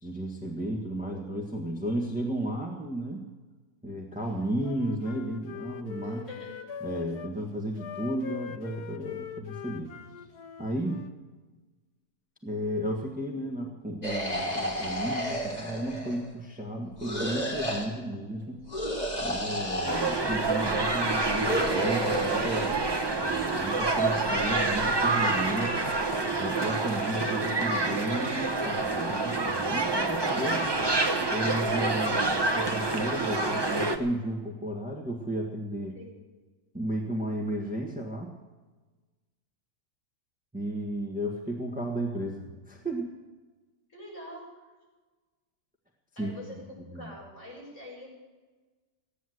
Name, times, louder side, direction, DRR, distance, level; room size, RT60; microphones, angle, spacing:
voice 1, 0.0-3.3 3.8-6.3 6.8-9.9 10.6-11.0 12.4-18.6 19.2-22.7 23.2-25.8 26.3-30.8 31.3-35.9 36.7-38.3 40.5-43.1 46.2-46.4 46.9-47.1, right 1 dB, 5° right, 0 dB, 1.4 m, -33 dB
Wind instrument woodwind instrument, 4.4-7.3 7.8-11.2, left 8 dB, 70° left, 1.3 m, -42 dB
voice 2, 6.0-6.6 35.9-36.2 43.9-44.6 46.2-48.1, left 1 dB, 45° left, -5 dB, 7.7 m, -45 dB
sound 1, 14.0-16.3 17.0-17.9 18.7-20.3 21.1-22.7, equal, 25° left, 3.1 m, -32 dB
sound 2, 19.9-34.0, right 3 dB, 20° right, 0.7 m, -27 dB
16.0 x 10.5 x 7.9 m, 1.3 s
omnidirectional pair, 1.8 m